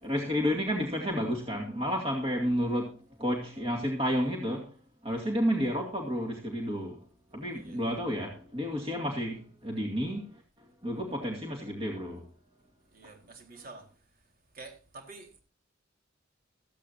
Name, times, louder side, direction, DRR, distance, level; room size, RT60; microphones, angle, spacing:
voice 1, 0.0-4.8 5.0-7.0 7.3-10.4 10.8-12.3, equal, 30° right, 2.3 m, -31 dB
voice 2, 12.9-14.2 14.5-15.4, right 3 dB, 45° right, 4.3 m, -49 dB
16.5 x 14.5 x 2.7 m
head